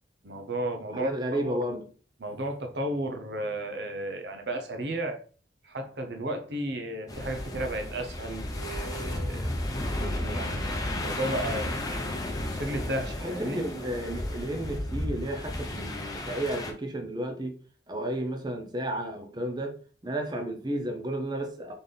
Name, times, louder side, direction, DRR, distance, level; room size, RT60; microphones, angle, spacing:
voice 1, 0.2-1.6 2.2-5.2 5.6-9.5 10.0-13.6, right 1 dB, 70° right, 0.8 m, -34 dB
voice 2, 0.9-1.8 13.2-17.6 17.9-19.8 20.0-21.7, right 1 dB, 25° right, 0.6 m, -32 dB
sound 1, 7.1-16.7, left 1 dB, 20° left, 0.7 m, -33 dB
4.0 x 3.4 x 3.9 m
head